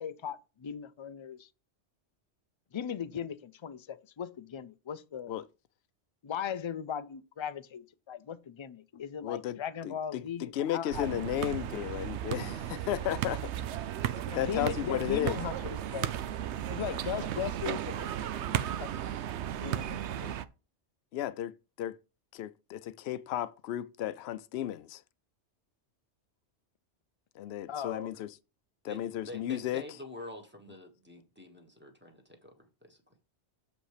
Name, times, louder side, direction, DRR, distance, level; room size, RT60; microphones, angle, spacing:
voice 1, 0.0-1.5 2.7-5.3 6.2-11.1 14.3-16.1 16.7-18.9 19.6-20.3 27.7-28.1, left 8 dB, 45° left, 0.3 m, -38 dB
voice 2, 9.2-13.5 14.3-15.4 20.2-20.3 21.1-21.5 21.8-22.0 22.3-25.0 27.4-28.3 28.8-29.8, left 12 dB, 70° left, 0.8 m, -34 dB
sound 1, 10.9-20.5, right 11 dB, 75° right, 0.9 m, -35 dB
voice 3, 29.3-33.0, left 1 dB, 10° right, 1.4 m, -47 dB
7.3 x 5.2 x 4.9 m
omnidirectional pair, 1.2 m